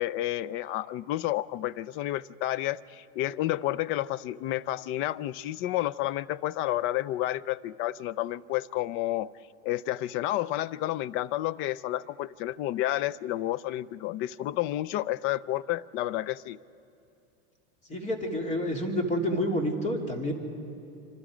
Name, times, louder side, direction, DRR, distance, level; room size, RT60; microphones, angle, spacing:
voice 1, 0.0-9.3 9.6-16.6, left 14 dB, 35° left, 18 dB, 0.4 m, -30 dB
voice 2, 17.9-20.3, equal, 20° left, 2 dB, 3.0 m, -29 dB
26.5 x 26.0 x 5.1 m, 2.7 s
supercardioid pair, 135°, 35 cm